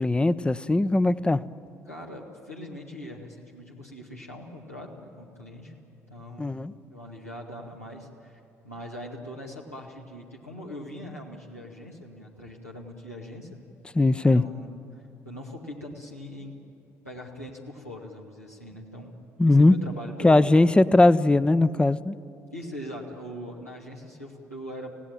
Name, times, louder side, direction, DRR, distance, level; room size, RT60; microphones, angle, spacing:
voice 1, 0.0-1.5 6.4-6.7 13.9-14.4 19.4-19.7 20.2-22.2, left 2 dB, 10° left, 16 dB, 0.7 m, -19 dB
voice 2, 1.9-5.7 6.1-13.7 14.3-14.7 15.2-16.5 17.0-19.1 19.5-20.6 22.5-24.9, equal, 90° left, -3 dB, 2.1 m, -41 dB
26.0 x 17.5 x 9.0 m, 2.7 s
figure-of-eight pair, 50°, 8 cm